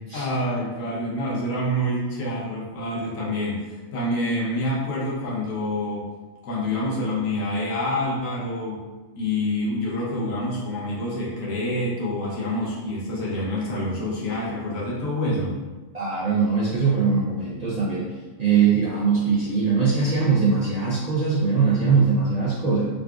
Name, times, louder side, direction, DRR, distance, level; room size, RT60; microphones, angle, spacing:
voice 1, 0.1-6.1 6.4-8.8 9.1-15.5, left 1 dB, 75° left, -5 dB, 1.2 m, -27 dB
voice 2, 15.9-18.0 18.4-22.8, right 5 dB, 55° right, -7 dB, 0.4 m, -21 dB
3.8 x 2.4 x 2.3 m, 1.3 s
omnidirectional pair, 1.4 m